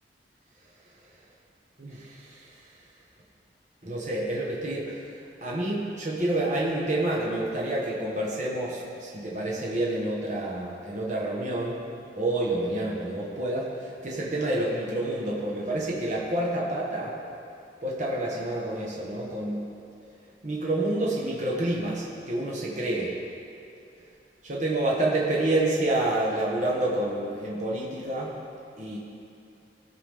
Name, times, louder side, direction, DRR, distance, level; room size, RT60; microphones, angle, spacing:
voice 1, 1.8-2.5 3.8-5.0 5.4-11.8 12.1-17.2 17.8-19.6 20.4-23.2 24.4-28.3 28.8-29.0, right 1 dB, 45° right, -4 dB, 1.3 m, -28 dB
17.5 x 5.9 x 3.6 m, 2.6 s
head